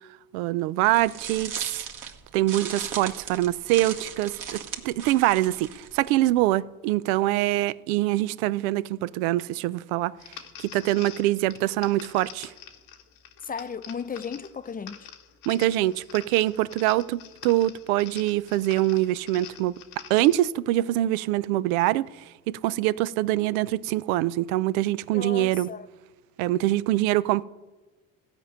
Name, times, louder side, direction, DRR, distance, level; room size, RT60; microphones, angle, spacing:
voice 1, 0.3-1.9 2.3-10.1 10.6-12.5 15.5-19.7 20.1-22.1 22.5-25.7 26.4-27.4, right 16 dB, 80° right, 0.5 m, -24 dB
sound 1, 0.8-6.4, right 7 dB, 50° right, 1.5 m, -37 dB
sound 2, 10.2-20.5, left 9 dB, 80° left, 1.4 m, -46 dB
voice 2, 13.4-15.1 25.1-25.9, left 6 dB, 20° left, 0.6 m, -35 dB
15.5 x 5.2 x 8.7 m
hypercardioid pair, 75°, 42 cm